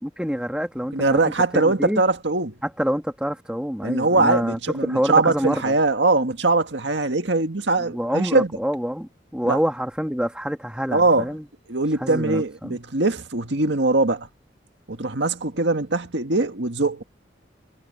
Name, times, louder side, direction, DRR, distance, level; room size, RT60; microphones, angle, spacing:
voice 1, 0.0-1.2 1.5-2.0 2.6-5.7 7.8-11.4 12.0-12.8, equal, 5° right, 2.1 m, -26 dB
voice 2, 0.9-2.5 3.8-8.5 9.4-9.6 10.9-11.3 11.7-14.3 14.9-17.0, right 3 dB, 80° right, 1.8 m, -21 dB
head